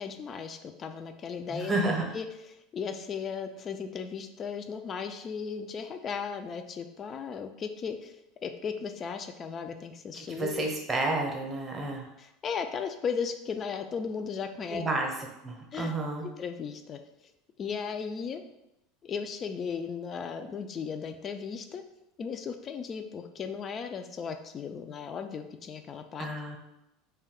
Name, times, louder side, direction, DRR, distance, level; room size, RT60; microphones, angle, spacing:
voice 1, 0.0-1.8 2.1-2.3 2.7-8.2 8.4-10.6 12.2-14.8 15.7-15.9 16.4-17.0 17.6-18.4 19.0-21.8 22.2-26.3, left 6 dB, 35° left, 7 dB, 0.3 m, -36 dB
voice 2, 1.5-2.1 10.1-12.0 14.7-15.1 15.4-16.3 26.2-26.6, right 2 dB, 25° right, 1 dB, 0.7 m, -30 dB
2.6 x 2.2 x 3.6 m, 0.87 s
figure-of-eight pair, 75°, 0 cm